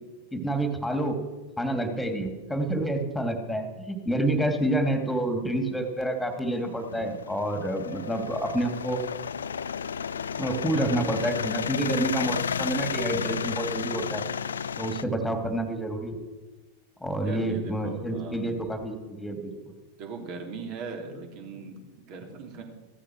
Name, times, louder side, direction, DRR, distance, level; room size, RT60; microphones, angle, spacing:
voice 1, 0.3-1.2 1.6-9.0 10.4-14.3 14.8-16.2 17.0-19.5, right 1 dB, 5° left, 6 dB, 2.6 m, -28 dB
sound 1, 6.0-15.0, left 7 dB, 70° left, 0.5 m, -32 dB
voice 2, 17.2-18.6 20.0-22.6, right 4 dB, 40° right, 3 dB, 3.4 m, -39 dB
16.0 x 14.0 x 6.3 m, 1.2 s
figure-of-eight pair, 90°, 0 cm